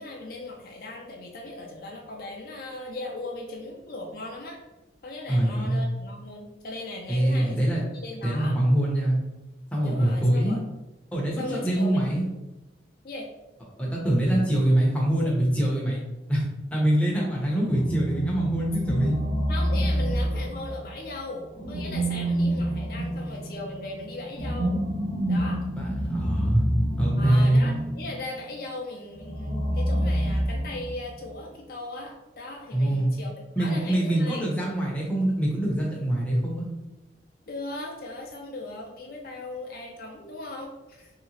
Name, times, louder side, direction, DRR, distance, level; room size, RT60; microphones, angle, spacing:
voice 1, 0.0-4.6 5.0-8.6 9.8-10.6 11.4-12.1 13.0-13.3 19.5-24.7 25.3-25.6 27.2-34.5 37.5-41.1, left 2 dB, 50° left, 0 dB, 0.4 m, -38 dB
voice 2, 5.3-5.8 7.1-7.8 8.2-9.2 9.7-10.6 11.1-12.3 13.8-16.0 16.3-16.4 16.7-19.2 25.7-26.6 27.0-27.6 32.7-33.1 33.6-36.7, right 1 dB, 5° left, -4 dB, 0.6 m, -24 dB
sound 1, 17.6-20.9 21.6-28.2 29.1-31.1, right 1 dB, 30° right, 0.8 m, -27 dB
3.0 x 2.8 x 2.8 m, 1.0 s
head